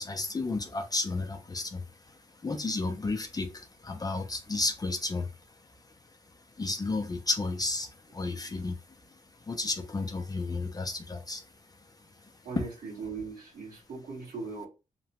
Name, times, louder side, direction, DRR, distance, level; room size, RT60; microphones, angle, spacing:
voice 1, 0.0-1.8 2.4-5.3 6.6-8.7 9.5-11.4, left 3 dB, 25° left, 0.4 m, -32 dB
voice 2, 12.4-14.7, right 4 dB, 90° right, 1.3 m, -39 dB
2.9 x 2.1 x 2.8 m
wide cardioid pair, 105°, 15 cm